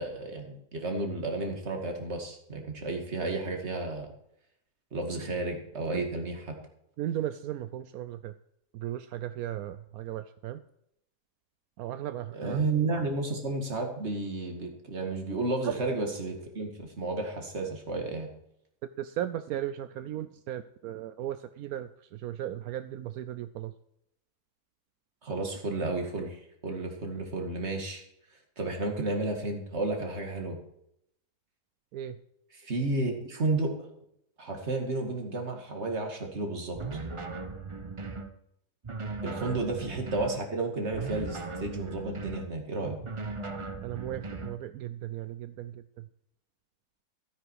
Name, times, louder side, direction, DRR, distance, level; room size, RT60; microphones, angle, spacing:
voice 1, 0.0-4.1 4.9-6.6 12.3-18.3 25.2-28.0 28.6-30.6 32.5-33.7 34.4-36.8 39.2-43.0, right 2 dB, 45° right, 3 dB, 2.4 m, -32 dB
voice 2, 7.0-8.3 8.7-10.6 11.8-12.6 19.0-21.9 22.2-23.7 31.9-32.2 43.8-45.8, right 12 dB, 80° right, 12 dB, 1.1 m, -36 dB
sound 1, 36.8-38.3 38.8-40.4 40.9-42.5 43.0-44.6, right 3 dB, 30° right, 0.7 m, -38 dB
13.0 x 9.8 x 4.7 m, 0.76 s
omnidirectional pair, 1.5 m